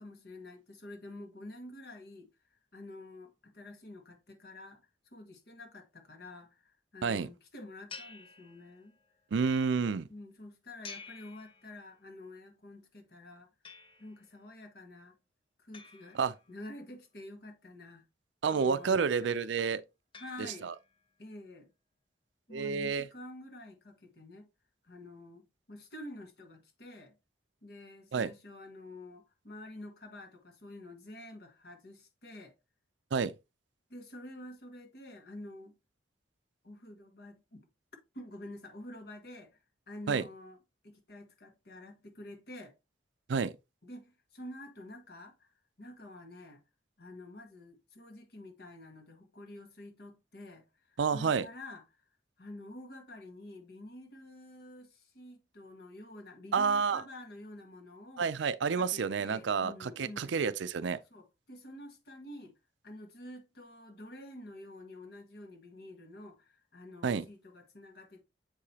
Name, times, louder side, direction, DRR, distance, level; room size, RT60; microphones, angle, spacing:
voice 1, 0.0-4.8 5.1-9.0 10.1-13.5 14.0-15.2 15.6-16.2 16.5-18.0 18.5-19.7 20.1-20.7 21.2-21.7 22.5-24.5 24.8-27.2 27.6-32.5 33.9-35.7 36.6-37.7 38.1-42.7 43.8-45.5 45.8-46.6 47.0-52.0 52.4-58.4 58.7-60.5 61.1-62.5 62.8-68.2, left 1 dB, 55° left, 1.4 m, -49 dB
sound 1, 7.9-9.1 10.8-12.1 13.6-14.4 15.7-16.9 18.5-19.2 20.1-21.0, left 4 dB, 30° left, 0.7 m, -52 dB
voice 2, 9.3-10.1 16.1-16.3 18.4-19.8 20.6-20.7 22.5-23.1 28.1-28.3 33.1-33.3 40.1-40.2 43.3-43.5 51.0-51.4 56.5-57.0 58.2-61.0 67.0-67.3, right 5 dB, 75° right, 0.4 m, -29 dB
7.5 x 4.8 x 2.8 m
head